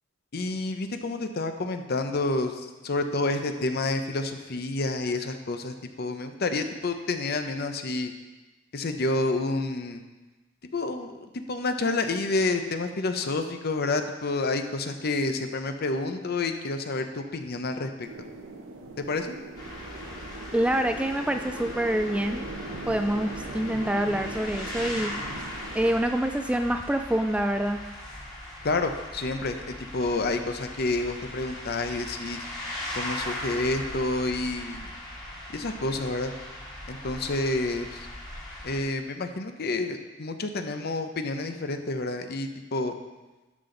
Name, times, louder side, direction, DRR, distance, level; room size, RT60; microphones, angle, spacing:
voice 1, 0.3-8.1 8.7-10.0 10.7-18.1 19.0-19.3 28.6-32.4 33.0-34.9 35.5-36.3 36.9-38.1 38.6-42.9, left 2 dB, 55° left, 7 dB, 0.7 m, -29 dB
sound 1, 18.0-26.0, right 2 dB, 80° right, 1.0 m, -40 dB
sound 2, 19.6-38.8, left 1 dB, 20° left, 1.8 m, -39 dB
voice 2, 20.5-22.5 22.9-25.1 25.7-27.8, right 1 dB, 5° right, 7 dB, 0.3 m, -26 dB
12.0 x 5.9 x 3.9 m, 1.2 s
head